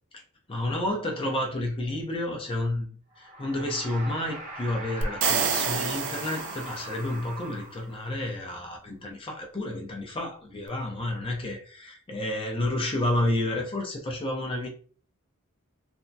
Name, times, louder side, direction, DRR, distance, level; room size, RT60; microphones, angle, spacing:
voice 1, 0.5-2.9 3.2-14.7, left 1 dB, 25° left, 0 dB, 0.5 m, -30 dB
sound 1, 3.1-8.2, right 2 dB, 35° right, 0.8 m, -41 dB
sound 2, 5.0-7.1, right 6 dB, 55° right, 0.4 m, -28 dB
3.3 x 2.0 x 2.6 m, 0.43 s
head